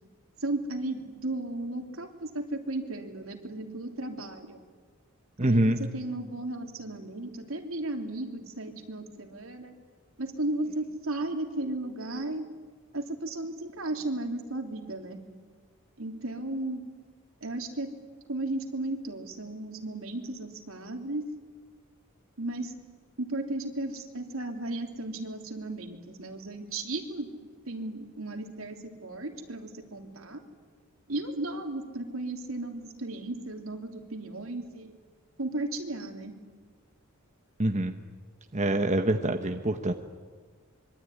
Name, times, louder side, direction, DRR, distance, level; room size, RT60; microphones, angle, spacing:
voice 1, 0.4-4.6 5.4-9.7 10.2-12.4 12.9-15.2 16.0-16.8 17.4-17.9 18.3-21.2 22.4-22.7 23.2-27.3 27.7-30.4 31.1-34.9 35.4-36.3, right 2 dB, 75° right, 4 dB, 3.2 m, -35 dB
voice 2, 5.4-5.8 37.6-37.9 38.5-39.9, right 1 dB, 35° right, 5 dB, 1.2 m, -25 dB
25.5 x 23.5 x 9.8 m, 1.5 s
head